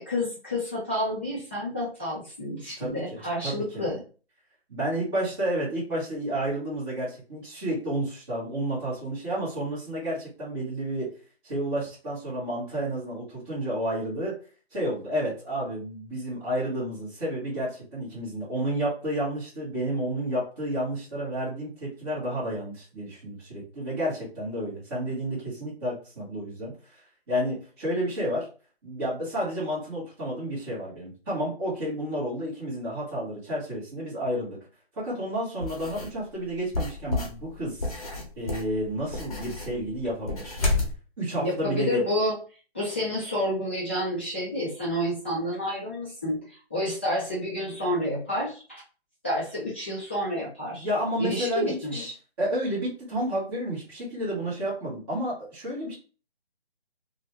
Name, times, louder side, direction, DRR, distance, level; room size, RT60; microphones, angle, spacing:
voice 1, 0.0-4.0 41.4-42.4 42.7-48.8 49.2-50.9 51.2-52.1, left 1 dB, 10° left, -9 dB, 0.5 m, -29 dB
voice 2, 2.8-3.8 4.7-11.1 11.4-14.4 14.7-28.5 28.8-34.6 34.9-37.9 38.4-40.6 41.2-42.0 50.7-52.0 52.4-55.9, right 1 dB, 20° right, -11 dB, 1.1 m, -31 dB
sound 1, 35.6-36.1 36.7-41.0, left 2 dB, 35° left, 0.8 m, -30 dB
2.6 x 2.1 x 3.0 m, 0.37 s
figure-of-eight pair, 155°, 32 cm